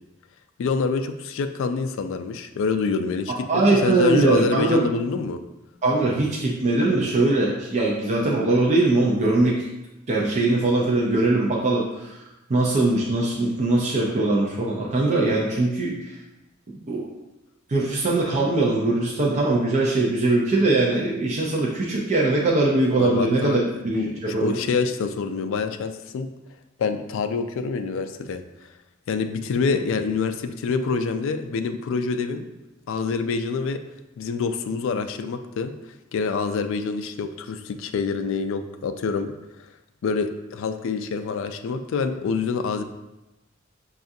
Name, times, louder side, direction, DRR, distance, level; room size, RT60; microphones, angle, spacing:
voice 1, 0.6-5.4 23.0-23.6 23.9-26.3 26.8-28.4 29.1-32.5 32.9-33.8 34.2-35.7 36.1-39.3 40.0-42.8, left 4 dB, 65° left, 8 dB, 0.3 m, -26 dB
voice 2, 3.3-4.9 5.8-9.6 10.1-12.2 12.5-15.9 16.9-17.1 17.7-24.6, right 2 dB, 35° right, -4 dB, 0.5 m, -21 dB
5.6 x 2.4 x 2.6 m, 0.98 s
head